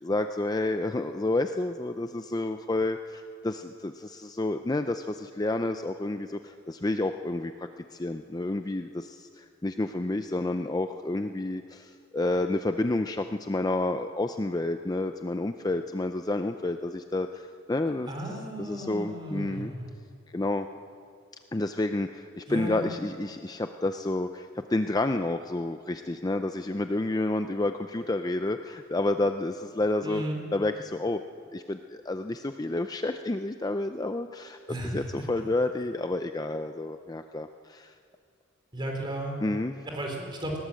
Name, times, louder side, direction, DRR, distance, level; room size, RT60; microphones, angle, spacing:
voice 1, 0.0-18.1 18.6-19.7 20.3-20.7 21.5-30.2 30.5-31.2 31.5-34.6 34.8-37.9 39.4-39.7, left 2 dB, 20° left, 8 dB, 0.5 m, -30 dB
voice 2, 18.0-19.9 22.5-22.9 30.0-30.4 34.7-35.1 38.7-39.4 39.9-40.6, right 1 dB, 25° right, 1 dB, 3.7 m, -34 dB
20.0 x 17.5 x 7.6 m, 2.3 s
head